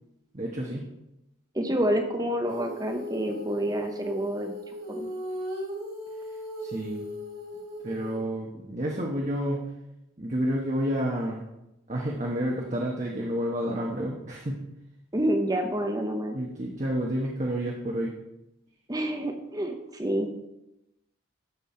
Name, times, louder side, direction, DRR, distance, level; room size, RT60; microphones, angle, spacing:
voice 1, 0.3-0.9 6.6-7.0 7.8-9.6 10.2-11.4 11.9-14.6 16.3-18.1, equal, 35° right, -2 dB, 1.1 m, -30 dB
voice 2, 1.5-4.6 4.9-5.1 15.1-16.4 18.9-20.3, right 1 dB, 20° right, 5 dB, 0.7 m, -28 dB
Female singing, 2.5-8.2, equal, 90° right, 3.6 m, -37 dB
13.0 x 5.6 x 4.3 m, 0.89 s
head